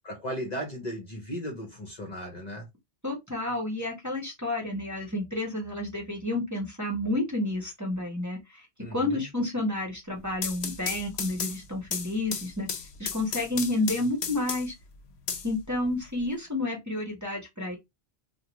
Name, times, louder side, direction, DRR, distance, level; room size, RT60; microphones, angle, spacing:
voice 1, 0.0-2.7 8.8-9.3, equal, 45° left, 0.8 m, -36 dB
voice 2, 3.0-8.7 8.9-12.7 13.0-14.7 15.4-17.8, left 2 dB, 20° right, 0.9 m, -30 dB
sound 1, 10.2-14.8 15.3-16.2, left 6 dB, 80° left, 0.8 m, -35 dB
2.4 x 2.2 x 2.9 m
omnidirectional pair, 1.1 m